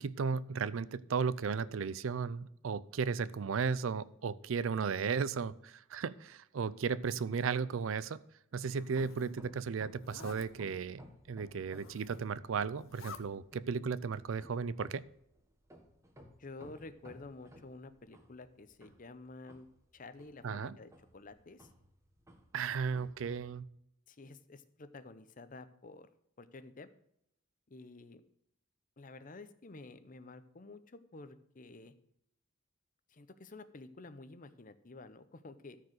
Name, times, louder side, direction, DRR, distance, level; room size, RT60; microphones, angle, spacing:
voice 1, 0.0-8.2 8.5-15.0 20.4-20.8 22.5-23.7, right 5 dB, 75° right, 19 dB, 0.4 m, -35 dB
Zipper (clothing), 8.6-9.3 10.0-10.5 11.6-12.3 12.7-13.2, left 5 dB, 80° left, 0.8 m, -51 dB
sound 1, 9.0-23.6, equal, 15° right, 1.3 m, -58 dB
voice 2, 16.4-19.7 19.9-21.7 24.1-26.1 26.4-26.9 27.7-28.2 29.0-31.9 33.1-35.8, left 3 dB, 40° left, 12 dB, 0.7 m, -51 dB
13.5 x 4.7 x 6.4 m, 0.76 s
head